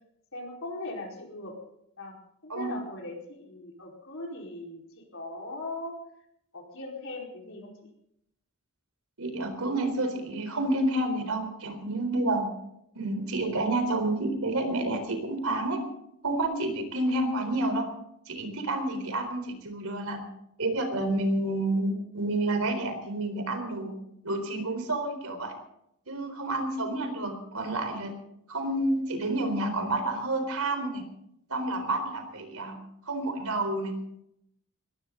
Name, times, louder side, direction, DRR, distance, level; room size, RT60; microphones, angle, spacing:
voice 1, 0.3-1.5 2.0-2.1 2.4-5.9 6.5-7.9, left 2 dB, 65° left, 0 dB, 4.7 m, -39 dB
voice 2, 9.2-12.5 12.9-15.8 16.2-17.9 18.3-20.2 20.6-24.0 24.2-25.5 26.1-28.2 28.5-31.0 31.5-32.8 33.0-33.9, right 2 dB, 85° right, 7 dB, 4.0 m, -29 dB
20.5 x 16.5 x 3.9 m, 0.76 s
head